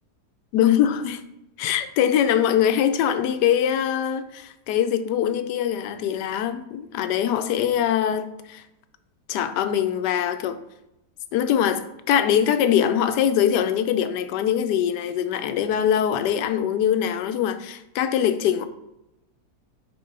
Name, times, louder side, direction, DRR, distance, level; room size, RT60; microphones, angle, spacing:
voice 1, 0.5-1.2 1.6-8.6 9.3-10.6 11.3-18.7, left 9 dB, 85° left, 1.2 m, -22 dB
4.6 x 4.3 x 5.3 m
omnidirectional pair, 1.8 m